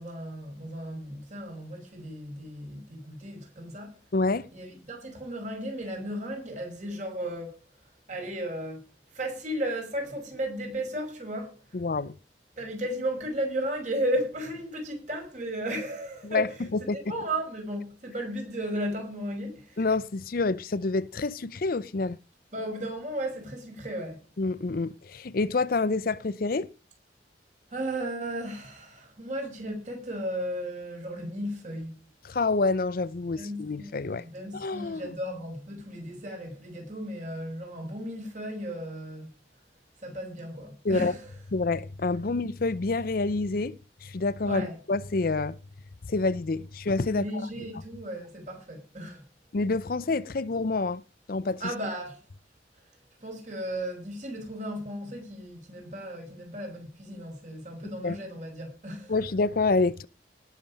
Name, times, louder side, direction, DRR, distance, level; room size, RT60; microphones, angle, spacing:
voice 1, 0.0-3.9 4.5-7.6 8.1-8.8 9.1-11.6 12.6-16.6 16.9-19.8 22.5-24.2 27.7-32.0 33.4-39.3 40.0-41.3 44.5-44.7 47.1-49.2 51.6-52.2 53.2-59.1, right 1 dB, 40° right, 5.7 m, -35 dB
voice 2, 4.1-4.5 11.7-12.1 16.2-17.0 19.8-22.2 24.4-26.7 32.2-34.2 34.5-35.1 40.8-41.2 41.5-43.7 44.0-45.6 46.0-47.4 49.5-51.0 51.3-51.7 58.0-58.2 59.1-60.1, left 3 dB, 50° left, 0.5 m, -27 dB
18.5 x 7.4 x 5.3 m
head